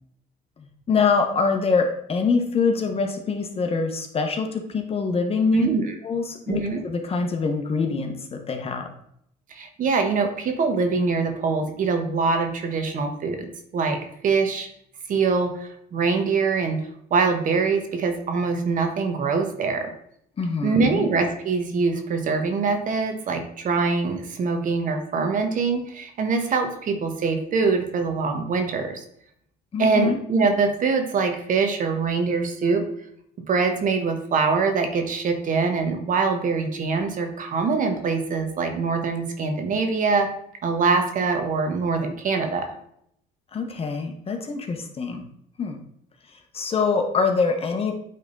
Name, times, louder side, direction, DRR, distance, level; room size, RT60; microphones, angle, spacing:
voice 1, 0.6-5.7 6.0-8.9 20.4-21.1 29.7-30.2 43.5-45.2 45.6-45.8 46.5-47.9, left 4 dB, 35° left, 4 dB, 1.2 m, -24 dB
voice 2, 5.5-6.0 6.5-6.8 9.5-14.0 14.2-14.7 15.1-16.8 17.1-19.9 20.6-29.0 29.8-32.9 33.5-40.3 40.6-42.7, right 4 dB, 50° right, 5 dB, 1.2 m, -23 dB
8.9 x 3.7 x 4.0 m, 0.70 s
cardioid pair, 110°, 17 cm